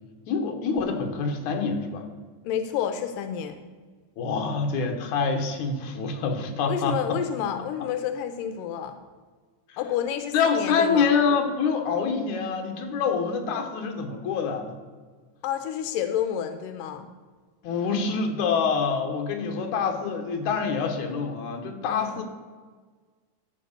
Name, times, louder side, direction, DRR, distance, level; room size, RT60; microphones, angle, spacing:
voice 1, 0.3-2.1 4.2-7.2 9.7-9.8 10.3-14.8 17.6-22.2, left 5 dB, 70° left, 4 dB, 2.5 m, -26 dB
voice 2, 2.4-3.6 6.7-9.0 9.8-11.1 15.4-17.1 21.9-22.2, left 9 dB, 90° left, 9 dB, 2.3 m, -29 dB
13.0 x 4.8 x 6.6 m, 1.5 s
omnidirectional pair, 3.8 m